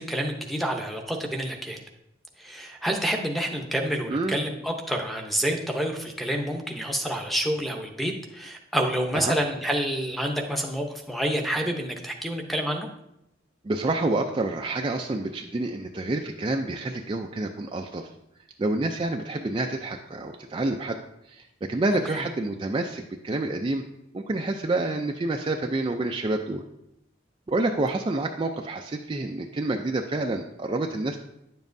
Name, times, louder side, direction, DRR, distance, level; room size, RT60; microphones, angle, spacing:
voice 1, 0.0-1.8 2.4-12.9 22.1-22.2, equal, ahead, 1 dB, 0.7 m, -28 dB
voice 2, 4.1-4.4 9.1-9.4 13.6-18.1 18.6-21.0 21.2-23.8 24.1-26.6 27.5-31.2, right 2 dB, 25° right, 3 dB, 0.4 m, -28 dB
9.9 x 7.2 x 2.6 m, 0.83 s
head